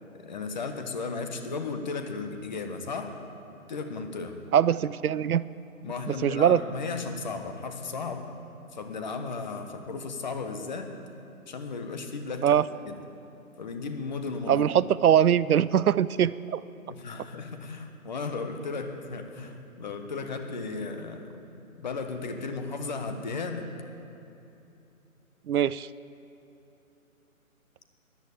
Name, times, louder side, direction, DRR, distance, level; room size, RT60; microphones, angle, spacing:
voice 1, 0.2-3.2 3.7-4.4 5.8-8.3 8.7-10.9 11.5-12.5 12.9-13.0 13.6-14.7 16.8-21.5 21.8-23.7, left 4 dB, 30° left, 7 dB, 1.1 m, -35 dB
voice 2, 4.5-5.4 6.2-6.6 12.4-12.7 14.5-16.6 25.5-25.9, right 9 dB, 80° right, 18 dB, 0.6 m, -22 dB
13.5 x 11.0 x 8.4 m, 2.8 s
figure-of-eight pair, 155°, 43 cm